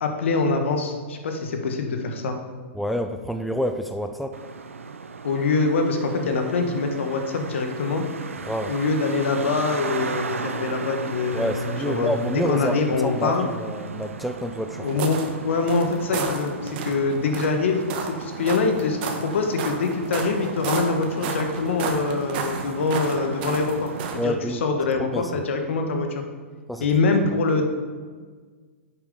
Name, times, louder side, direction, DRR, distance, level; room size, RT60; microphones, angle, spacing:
voice 1, 0.0-2.4 5.2-8.0 8.7-13.5 14.8-26.2 26.8-27.7, left 4 dB, 65° left, 5 dB, 1.3 m, -24 dB
voice 2, 2.7-4.4 8.5-8.8 11.3-14.9 24.2-24.6 25.0-25.4 26.7-26.9, equal, ahead, 6 dB, 0.4 m, -28 dB
Traffic noise roadway noise, 4.3-24.3, right 5 dB, 85° right, 0.5 m, -36 dB
sound 1, 14.9-24.2, right 4 dB, 50° right, 1.2 m, -33 dB
9.5 x 7.0 x 3.7 m, 1.5 s
hypercardioid pair, 110°, 7 cm